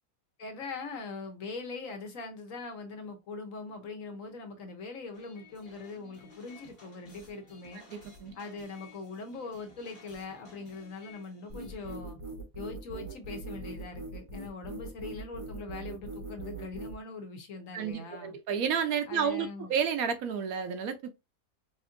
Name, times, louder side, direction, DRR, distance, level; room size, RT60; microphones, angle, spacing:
voice 1, 0.4-7.8 8.3-12.2 12.5-18.4 19.1-19.7, left 3 dB, 60° left, 1.1 m, -41 dB
sound 1, 5.1-12.0, left 3 dB, 35° left, 1.1 m, -55 dB
voice 2, 7.9-8.4 17.7-21.1, right 7 dB, 70° right, 1.0 m, -31 dB
sound 2, 11.5-17.0, right 3 dB, 30° right, 0.6 m, -41 dB
4.2 x 2.6 x 2.5 m
omnidirectional pair, 1.7 m